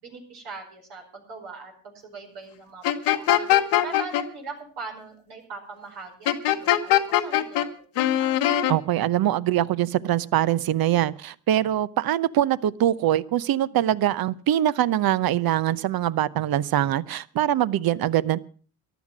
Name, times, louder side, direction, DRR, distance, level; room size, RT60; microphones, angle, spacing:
voice 1, 0.0-3.5 3.8-7.7 7.9-8.3, right 4 dB, 80° right, 1 dB, 5.1 m, -41 dB
sound 1, 2.8-4.2 6.3-7.7 8.0-8.7, left 13 dB, 85° left, 1.2 m, -21 dB
voice 2, 8.7-18.4, right 12 dB, 65° right, 18 dB, 0.8 m, -23 dB
14.0 x 11.0 x 6.1 m, 0.42 s
supercardioid pair, 60°, 40 cm